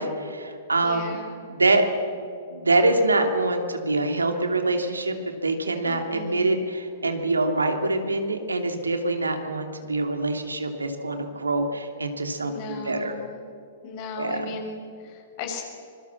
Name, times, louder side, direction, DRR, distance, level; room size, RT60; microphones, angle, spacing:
voice 1, 0.0-1.2 1.5-1.9 2.1-2.2 2.5-13.1 14.2-14.4, right 2 dB, 90° right, 5 dB, 2.9 m, -25 dB
voice 2, 0.8-1.4 5.8-6.6 12.4-13.5 13.8-15.6, left 4 dB, 45° left, 2 dB, 6.8 m, -37 dB
25.5 x 23.0 x 7.3 m, 2.4 s
hypercardioid pair, 110°, 0 cm